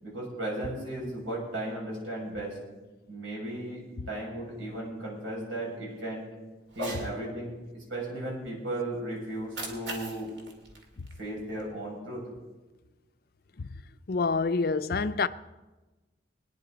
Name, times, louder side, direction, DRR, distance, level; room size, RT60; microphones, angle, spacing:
voice 1, 0.0-2.6 3.1-6.3 6.7-10.3 11.2-12.2, right 1 dB, 85° right, 6.3 m, -35 dB
Cat, 6.7-7.1 9.3-11.7, right 2 dB, 70° right, 2.4 m, -40 dB
voice 2, 14.1-15.3, left 4 dB, 50° left, 0.4 m, -27 dB
22.5 x 10.0 x 4.0 m
head